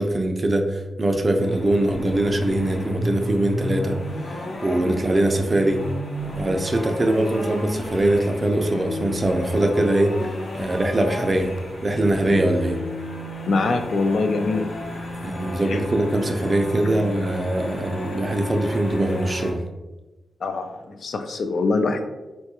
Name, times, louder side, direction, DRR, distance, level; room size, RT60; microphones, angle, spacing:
voice 1, 0.0-5.8 6.3-10.1 10.5-11.5 11.8-12.8 15.2-19.6, right 1 dB, 30° right, 4 dB, 0.4 m, -22 dB
sound 1, 1.4-19.5, left 1 dB, 85° left, 0.8 m, -32 dB
voice 2, 13.4-14.7 15.7-15.8 20.4-22.1, left 3 dB, 65° left, 6 dB, 0.3 m, -23 dB
3.9 x 2.3 x 2.8 m, 1.1 s
wide cardioid pair, 125°, 0 cm